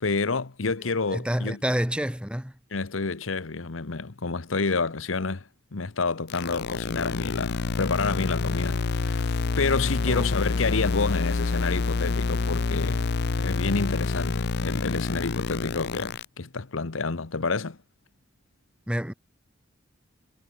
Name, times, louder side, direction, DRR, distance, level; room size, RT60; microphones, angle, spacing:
voice 1, 0.0-1.6 2.7-5.4 5.7-13.1 13.4-17.8, left 4 dB, 90° left, 1.0 m, -29 dB
voice 2, 0.8-2.5 10.0-10.2 18.9-19.1, equal, 5° right, 2.2 m, -29 dB
sound 1, 6.3-16.2, left 4 dB, 60° left, 0.6 m, -27 dB
head